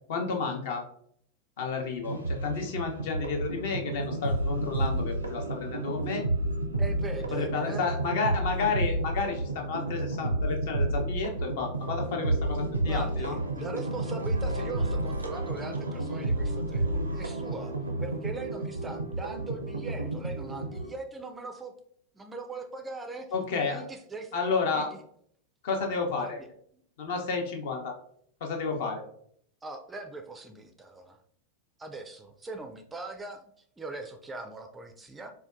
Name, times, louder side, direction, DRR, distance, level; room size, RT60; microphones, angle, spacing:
voice 1, 0.1-0.8 1.6-6.2 7.3-13.4 23.3-23.8 24.3-24.9 25.6-26.4 27.0-27.9 28.4-29.0, left 4 dB, 55° left, 3 dB, 0.7 m, -31 dB
sound 1, 2.0-20.9, right 1 dB, 80° right, 0.4 m, -31 dB
voice 2, 6.8-7.8 12.8-17.7 18.0-21.7 22.1-23.3 23.7-24.3 24.7-25.0 26.2-26.5 26.7-26.8 29.6-31.2 31.8-35.3, right 3 dB, 10° right, 5 dB, 0.4 m, -40 dB
4.3 x 2.2 x 2.4 m, 0.65 s
figure-of-eight pair, 90°, 0 cm